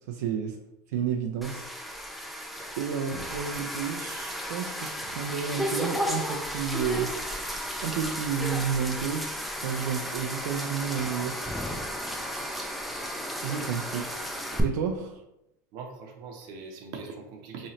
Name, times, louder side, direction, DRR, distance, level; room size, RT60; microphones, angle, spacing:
voice 1, 0.1-0.6 0.9-1.7 2.8-7.1 7.8-9.3 9.6-11.4 13.4-14.1 14.6-15.1, right 7 dB, 80° right, 2 dB, 0.4 m, -31 dB
sound 1, 1.4-14.6, equal, ahead, 0.3 m, -34 dB
voice 2, 15.7-17.7, right 5 dB, 50° right, 3 dB, 0.8 m, -42 dB
3.8 x 3.1 x 2.8 m, 0.86 s
supercardioid pair, 145°, 9 cm